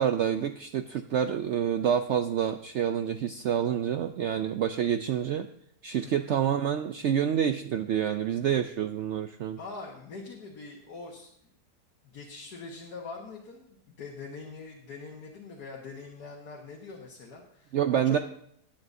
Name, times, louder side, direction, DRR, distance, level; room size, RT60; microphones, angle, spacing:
voice 1, 0.0-5.5 5.8-9.6 17.7-18.2, right 9 dB, 90° right, 9 dB, 0.6 m, -27 dB
voice 2, 6.0-6.4 9.6-11.3 12.0-18.2, left 4 dB, 70° left, -1 dB, 1.9 m, -43 dB
19.0 x 8.8 x 2.7 m, 0.68 s
omnidirectional pair, 1.8 m